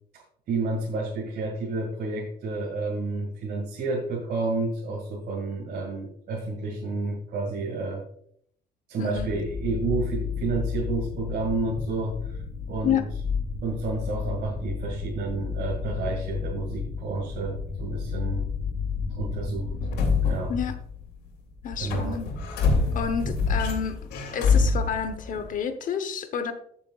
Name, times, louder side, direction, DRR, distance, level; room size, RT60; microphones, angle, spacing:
voice 1, 0.1-8.0 8.9-12.4 12.7-13.0 13.6-18.5 19.2-19.7 20.2-20.5 21.8-22.2 22.8-22.9, right 3 dB, 65° right, -1 dB, 2.3 m, -30 dB
voice 2, 9.0-9.3 12.8-13.0 20.5-20.7 21.6-22.3 22.9-24.0 24.3-26.5, left 7 dB, 50° left, 10 dB, 1.0 m, -29 dB
sound 1, 9.2-21.3 21.6-25.6, left 4 dB, 85° left, 2.7 m, -29 dB
14.0 x 7.0 x 2.4 m, 0.66 s
cardioid pair, 110°, 17 cm